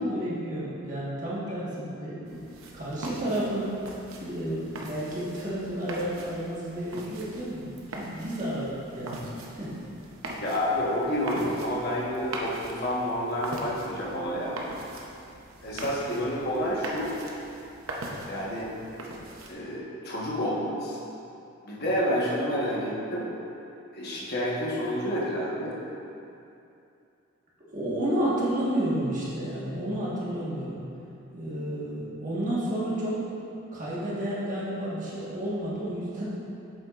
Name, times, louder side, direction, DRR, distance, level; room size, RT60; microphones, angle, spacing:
voice 1, 0.0-2.4 2.7-3.7 4.2-9.9 27.7-30.9 31.3-33.2 33.7-36.3, right 1 dB, 35° right, -8 dB, 1.5 m, -31 dB
sound 1, 2.3-19.5, right 1 dB, 80° right, 0.8 m, -41 dB
voice 2, 10.4-14.6 15.6-17.2 18.2-18.7 19.5-21.0 21.6-23.3 23.9-25.8, equal, 50° left, -6 dB, 1.3 m, -29 dB
7.8 x 7.1 x 2.5 m, 2.7 s
head